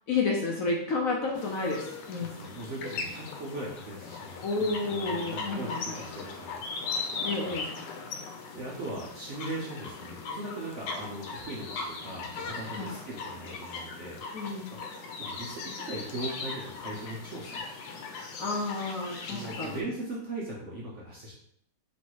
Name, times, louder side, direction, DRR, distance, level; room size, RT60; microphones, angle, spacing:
voice 1, 0.1-2.3 4.4-6.0 7.2-7.7 12.8-12.9 14.3-14.7 18.4-19.8, left 3 dB, 65° left, -1 dB, 0.9 m, -31 dB
sound 1, 1.3-19.8, left 4 dB, 85° left, 1.4 m, -39 dB
voice 2, 2.2-6.6 7.4-7.6 8.5-14.2 14.7-14.8 15.1-17.6 19.3-21.3, right 2 dB, 60° right, -4 dB, 0.8 m, -39 dB
3.1 x 3.1 x 4.5 m, 0.69 s
omnidirectional pair, 2.0 m